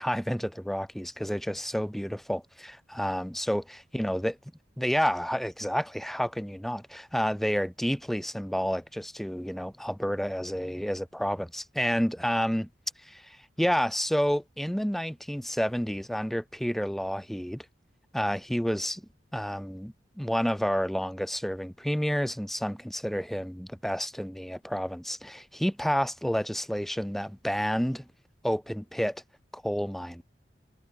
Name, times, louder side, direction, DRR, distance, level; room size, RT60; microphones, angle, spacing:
voice 1, 0.0-4.3 4.8-12.7 13.1-17.6 18.1-19.0 19.3-28.0 28.4-29.2 29.5-30.2, equal, ahead, 0.8 m, -30 dB
head